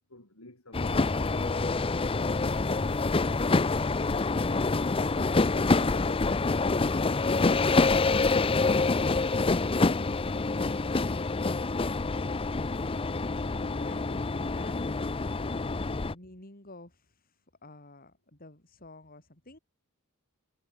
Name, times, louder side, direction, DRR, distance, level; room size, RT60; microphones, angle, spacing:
voice 1, 0.1-1.8, left 2 dB, 75° left, 5.7 m, -49 dB
sound 1, 0.7-16.1, left 3 dB, 25° left, 0.6 m, -26 dB
voice 2, 12.6-14.8 16.0-19.6, left 2 dB, 40° left, 5.3 m, -51 dB
head